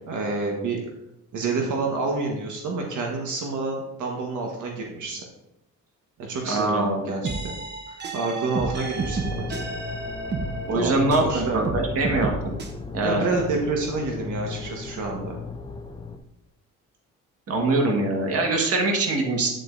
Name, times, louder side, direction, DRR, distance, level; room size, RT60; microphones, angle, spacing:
voice 1, 0.1-0.8 1.3-5.2 6.2-7.5 7.9-9.6 10.7-11.6 13.0-15.4, right 3 dB, 70° right, 0 dB, 1.5 m, -28 dB
voice 2, 6.4-7.0 10.7-12.5 12.9-13.3 17.5-19.5, right 2 dB, 50° right, 1 dB, 1.7 m, -23 dB
sound 1, 7.2-11.3 11.6-12.7, right 3 dB, 35° right, 1.0 m, -31 dB
sound 2, 9.0-16.2, left 4 dB, 15° left, 0.6 m, -36 dB
9.1 x 7.7 x 2.7 m, 0.88 s
cardioid pair, 140°, 31 cm